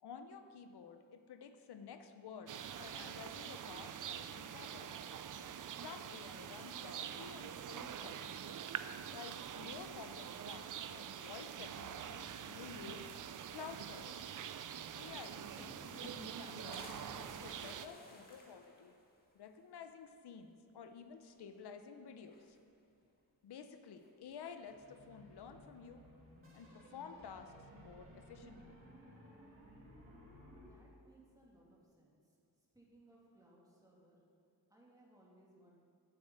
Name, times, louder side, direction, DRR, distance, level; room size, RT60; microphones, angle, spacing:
voice 1, 0.0-5.0 5.8-8.5 9.1-13.1 13.5-14.4 14.9-16.8 17.4-18.9 19.3-22.6 23.4-26.0 26.5-28.8, left 6 dB, 85° left, 8 dB, 0.8 m, -52 dB
sound 1, 2.5-17.9, right 9 dB, 55° right, 0.5 m, -45 dB
sound 2, 15.3-16.4 16.7-19.3 19.7-19.8 20.1-20.2 21.3-21.8 22.2-22.9 24.0-24.5, left 1 dB, 25° left, 1.6 m, -56 dB
sound 3, 24.6-30.7, equal, 35° right, 2.8 m, -58 dB
voice 2, 30.7-32.4 32.7-34.2 34.7-35.7, right 1 dB, 10° right, -4 dB, 2.5 m, -65 dB
9.5 x 7.4 x 8.9 m, 2.4 s
wide cardioid pair, 175°, 38 cm